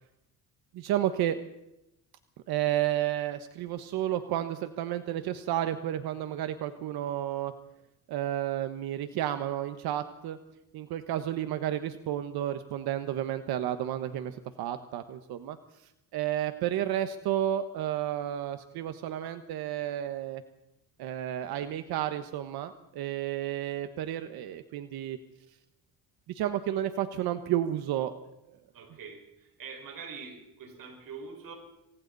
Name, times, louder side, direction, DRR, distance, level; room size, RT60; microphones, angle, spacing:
voice 1, 0.7-1.4 2.5-7.5 8.1-10.4 10.7-15.6 16.1-20.4 21.0-25.2 26.3-28.1, right 12 dB, 85° right, 9 dB, 1.3 m, -31 dB
voice 2, 28.7-31.6, right 5 dB, 65° right, 3 dB, 5.3 m, -44 dB
27.5 x 24.0 x 4.1 m, 0.87 s
cardioid pair, 105°, 36 cm